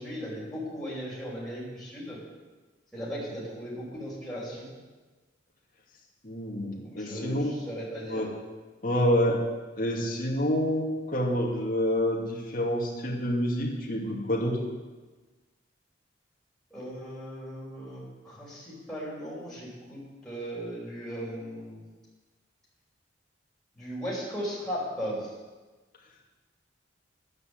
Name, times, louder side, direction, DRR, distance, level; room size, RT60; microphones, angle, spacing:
voice 1, 0.0-2.2 2.9-4.7 6.8-8.2 16.7-21.8 23.7-25.3, equal, 5° left, -7 dB, 4.9 m, -37 dB
voice 2, 6.2-7.5 8.1-8.3 8.8-9.4 9.8-14.6, equal, 45° left, -1 dB, 2.6 m, -27 dB
11.0 x 9.4 x 7.9 m, 1.3 s
head